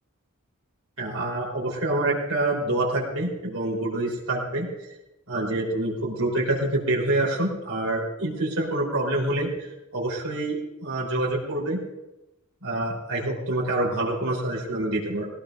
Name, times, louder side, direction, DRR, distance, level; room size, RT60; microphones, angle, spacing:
voice 1, 1.0-4.7 5.3-9.5 9.9-11.8 12.6-15.3, right 2 dB, 75° right, -4 dB, 3.9 m, -26 dB
20.5 x 17.0 x 2.6 m, 0.95 s
head